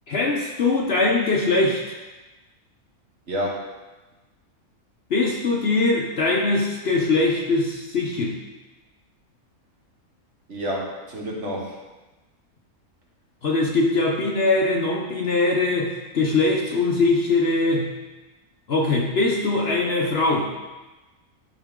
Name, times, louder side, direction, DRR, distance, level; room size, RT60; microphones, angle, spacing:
voice 1, 0.1-2.0 5.1-8.4 13.4-17.9 18.7-20.5, left 3 dB, 50° left, -1 dB, 0.9 m, -22 dB
voice 2, 3.3-3.7 10.5-11.8, equal, 50° right, -3 dB, 1.7 m, -29 dB
11.5 x 4.5 x 3.7 m, 1.1 s
omnidirectional pair, 1.6 m